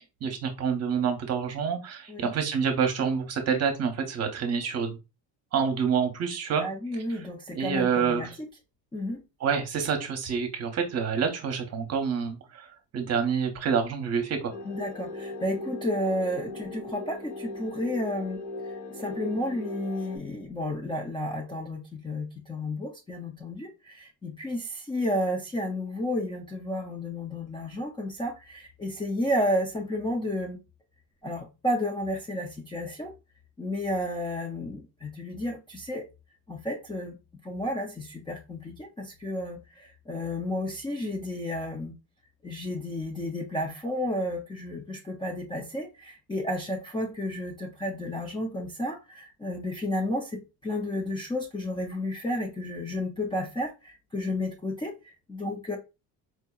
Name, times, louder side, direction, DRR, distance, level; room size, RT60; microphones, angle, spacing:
voice 1, 0.0-5.0 5.5-6.6 7.5-8.4 9.4-12.7 12.9-14.5, right 6 dB, 40° right, 0.8 m, -27 dB
voice 2, 6.6-8.3 8.9-9.2 14.6-30.6 31.2-33.1 33.6-36.1 36.5-37.2 37.4-41.9 42.4-55.8, left 1 dB, 15° left, 0.4 m, -32 dB
sound 1, 14.5-20.2, left 2 dB, 80° left, 2.0 m, -38 dB
4.5 x 2.7 x 2.3 m
cardioid pair, 160°, 40 cm